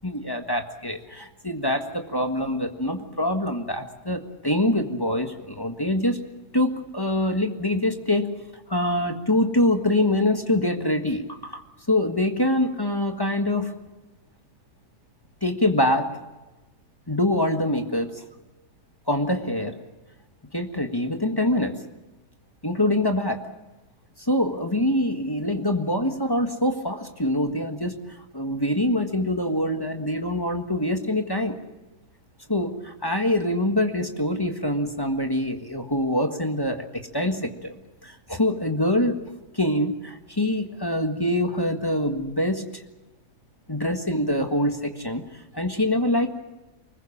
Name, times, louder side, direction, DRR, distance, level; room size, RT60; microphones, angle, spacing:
voice 1, 0.0-6.2 6.5-8.3 8.7-11.6 11.9-13.7 15.4-16.1 17.1-18.1 19.1-19.7 20.5-21.8 22.6-23.4 24.3-28.0 28.3-31.6 32.5-36.8 37.1-39.2 39.5-42.6 43.7-45.2 45.5-46.3, left 1 dB, 15° left, 5 dB, 1.5 m, -24 dB
24.5 x 20.5 x 7.3 m, 1.1 s
omnidirectional pair, 1.7 m